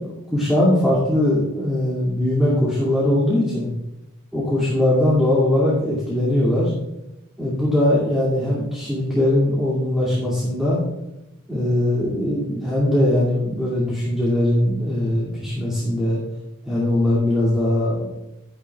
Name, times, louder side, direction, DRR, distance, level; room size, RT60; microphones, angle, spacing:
voice 1, 0.0-3.7 4.3-6.7 7.4-10.8 11.5-16.2 16.6-18.1, left 1 dB, ahead, -8 dB, 2.4 m, -20 dB
13.0 x 10.5 x 2.4 m, 0.91 s
head